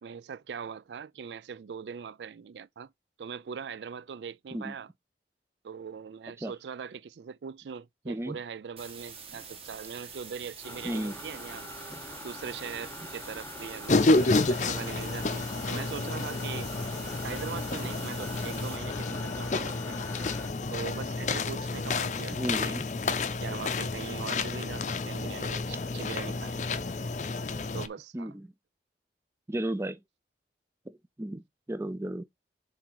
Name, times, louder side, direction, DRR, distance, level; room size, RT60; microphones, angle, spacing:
voice 1, 0.0-2.9 3.2-4.9 5.6-11.7 12.2-14.1 14.5-16.7 17.2-20.0 20.7-22.7 23.4-26.8 27.7-28.3, right 6 dB, 80° right, 0.4 m, -41 dB
voice 2, 8.1-8.4 10.8-11.1 11.9-12.0 22.3-22.9 28.1-28.5 29.5-30.0 30.9-32.2, right 1 dB, 15° right, 0.4 m, -34 dB
sound 1, 8.8-18.8, right 6 dB, 35° right, 1.6 m, -46 dB
sound 2, 10.6-20.5, left 2 dB, 15° left, 1.1 m, -44 dB
sound 3, 13.9-27.9, left 3 dB, 40° left, 0.5 m, -30 dB
7.4 x 3.5 x 4.7 m
head